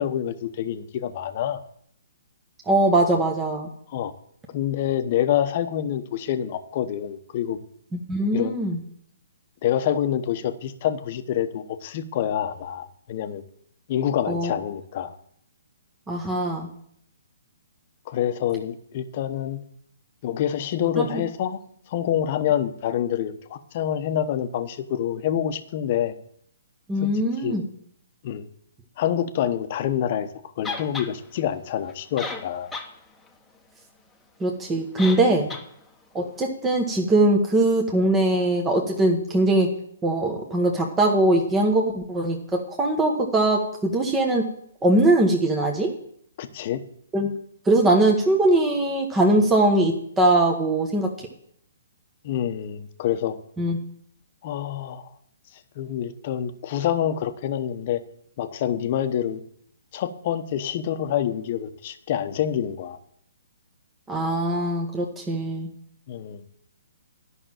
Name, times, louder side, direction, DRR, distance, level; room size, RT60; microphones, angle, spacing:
voice 1, 0.0-1.6 3.9-4.1 4.5-7.6 8.3-8.6 9.6-13.4 13.9-15.1 18.1-19.6 20.2-21.6 21.9-26.1 27.0-27.6 28.2-28.5 29.0-30.3 30.6-32.7 46.4-46.8 52.2-53.4 54.4-55.1 55.8-58.0 58.4-59.4 59.9-63.0 66.1-66.4, left 10 dB, 45° left, 10 dB, 0.9 m, -27 dB
voice 2, 2.7-3.7 7.9-8.8 14.3-14.5 16.1-16.7 21.0-21.1 26.9-27.6 34.4-35.5 36.1-39.7 40.0-44.5 44.8-45.9 47.1-47.3 47.6-51.1 53.6-53.8 64.1-65.7, right 1 dB, 15° right, 1 dB, 1.2 m, -21 dB
sound 1, 30.6-31.1 31.9-32.9 33.3-33.4 35.0-35.2 35.5-35.6, left 4 dB, 5° left, 1.2 m, -32 dB
11.0 x 6.0 x 7.6 m, 0.67 s
hypercardioid pair, 140°, 0 cm